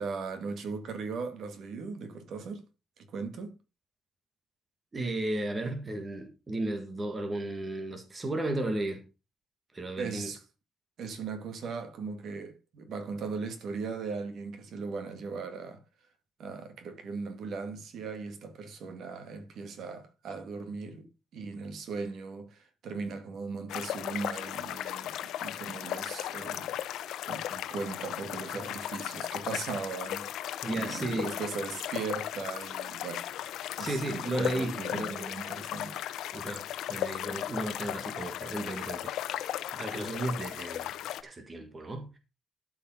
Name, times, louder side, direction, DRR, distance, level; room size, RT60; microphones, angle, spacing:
voice 1, 0.0-2.6 3.0-3.5 10.0-10.4 11.0-15.8 16.4-33.3 33.8-36.0, right 4 dB, 55° right, 2.2 m, -38 dB
voice 2, 4.9-9.0 9.7-10.3 28.5-28.7 30.6-31.3 33.8-35.3 36.3-39.1 39.7-40.9 41.2-42.2, right 2 dB, 20° right, 1.7 m, -34 dB
sound 1, 23.7-41.2, left 12 dB, 80° left, 0.8 m, -36 dB
12.5 x 5.5 x 5.5 m
cardioid pair, 170°, 0 cm